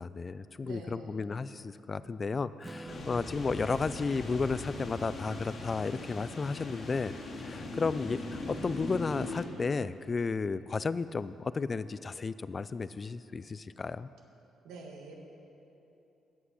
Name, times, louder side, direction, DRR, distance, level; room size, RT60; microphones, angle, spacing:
voice 1, 0.0-14.1, left 4 dB, 35° left, 15 dB, 0.3 m, -33 dB
voice 2, 0.6-1.2 2.9-3.1 14.6-15.1, right 3 dB, 90° right, 2 dB, 1.5 m, -47 dB
Strum, 2.6-6.5, right 1 dB, 15° right, 0.5 m, -52 dB
sound 1, 2.9-9.5, left 2 dB, 60° left, 2.2 m, -40 dB
16.0 x 5.8 x 6.3 m, 2.9 s
cardioid pair, 90°, 0 cm